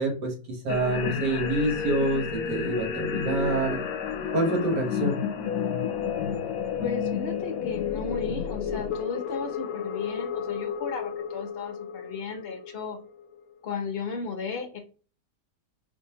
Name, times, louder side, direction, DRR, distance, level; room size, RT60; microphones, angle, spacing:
voice 1, 0.0-3.8 4.3-5.2, right 2 dB, 75° right, 1 dB, 1.8 m, -27 dB
sound 1, 0.7-13.4, left 7 dB, 70° left, 1.0 m, -31 dB
voice 2, 6.8-13.0 13.6-14.8, left 5 dB, 55° left, 4 dB, 0.6 m, -35 dB
4.6 x 2.6 x 2.8 m, 0.37 s
omnidirectional pair, 1.8 m